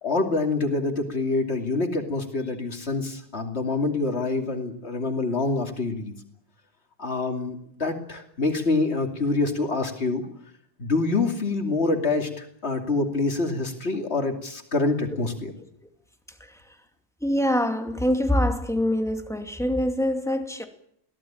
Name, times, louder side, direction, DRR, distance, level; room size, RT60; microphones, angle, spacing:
voice 1, 0.0-6.1 7.0-10.3 10.8-15.5, left 3 dB, 75° left, 2.9 m, -26 dB
voice 2, 17.2-20.7, left 1 dB, 5° left, 2.4 m, -24 dB
23.0 x 17.5 x 8.8 m
omnidirectional pair, 1.1 m